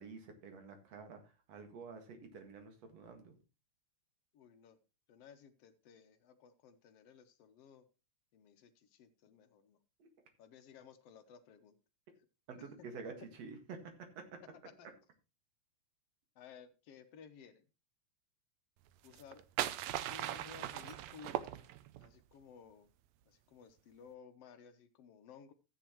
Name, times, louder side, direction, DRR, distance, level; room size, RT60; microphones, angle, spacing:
voice 1, 0.0-3.4 10.0-10.1 12.5-14.2, right 4 dB, 60° right, 5 dB, 2.8 m, -49 dB
voice 2, 4.3-4.8 5.1-7.8 8.3-9.8 10.4-11.8 14.7-14.9 16.4-17.6 19.0-19.4 20.1-21.4 22.0-22.9 23.3-25.5, left 7 dB, 65° left, 9 dB, 1.7 m, -57 dB
sound 1, 19.1-22.1, right 13 dB, 75° right, 1.8 m, -39 dB
13.5 x 8.8 x 3.0 m, 0.30 s
omnidirectional pair, 3.4 m